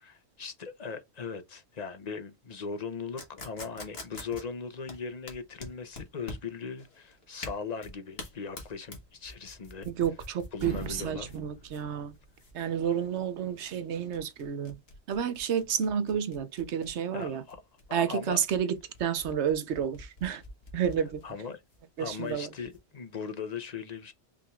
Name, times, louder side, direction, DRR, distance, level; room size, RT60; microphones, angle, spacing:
voice 1, 0.0-9.9 10.5-11.3 17.1-17.6 17.9-18.7 21.2-21.6 22.0-24.1, left 5 dB, 45° left, 0.7 m, -39 dB
sound 1, 3.2-22.8, left 2 dB, 65° left, 1.6 m, -47 dB
sound 2, 9.4-10.2 10.5-12.6, right 4 dB, 60° right, 1.7 m, -41 dB
voice 2, 9.9-12.1 12.5-14.8 15.1-17.4 17.9-20.4 20.7-21.2 22.0-22.5, right 8 dB, 90° right, 1.0 m, -30 dB
5.3 x 3.2 x 2.3 m
omnidirectional pair, 1.1 m